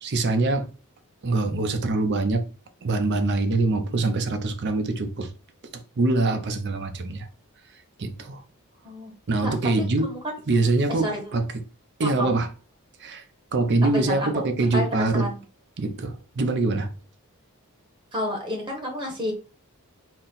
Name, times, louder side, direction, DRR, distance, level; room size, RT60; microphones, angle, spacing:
voice 1, 0.0-0.7 1.2-2.4 2.8-5.3 6.0-7.3 8.0-8.4 9.3-10.1 10.5-11.5 12.0-12.5 13.0-13.2 13.5-15.2 15.8-16.9, right 2 dB, 50° right, 0.6 m, -24 dB
voice 2, 9.4-10.3 10.9-11.3 12.0-12.4 13.9-14.4 14.7-15.4 18.1-19.3, left 1 dB, 20° right, 1.2 m, -30 dB
4.1 x 2.1 x 3.9 m
head